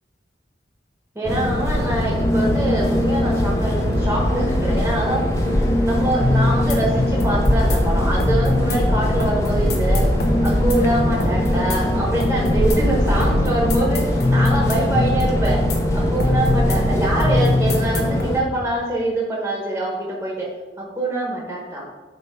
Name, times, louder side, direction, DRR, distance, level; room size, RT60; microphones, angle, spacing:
voice 1, 1.1-5.2 5.8-10.0 10.4-15.6 15.9-20.5 20.8-21.9, right 1 dB, 10° right, -3 dB, 1.1 m, -25 dB
sound 1, 1.2-18.4, left 1 dB, 15° left, 0.7 m, -22 dB
sound 2, 2.1-18.2, left 1 dB, 55° left, 1.0 m, -23 dB
8.1 x 2.9 x 5.5 m, 1.3 s
head